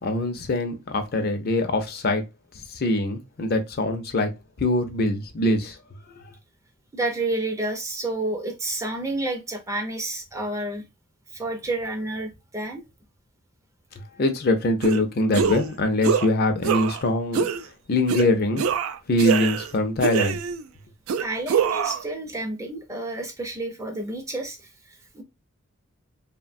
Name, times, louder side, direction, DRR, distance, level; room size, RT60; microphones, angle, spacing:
voice 1, 0.0-2.2 2.5-4.3 4.6-5.8 6.1-6.3 14.0-17.5 17.9-18.7 19.1-20.4, left 2 dB, 45° left, 0.5 m, -23 dB
voice 2, 6.9-10.8 11.3-12.8 21.2-25.2, right 2 dB, 15° right, 0.4 m, -30 dB
sound 1, 14.8-15.0 15.3-15.7 16.0-16.3 16.6-17.0 17.3-17.6 18.1-18.3 18.6-19.7 20.0-20.6 21.1-22.0, right 7 dB, 80° right, 0.3 m, -24 dB
3.1 x 2.1 x 2.4 m
head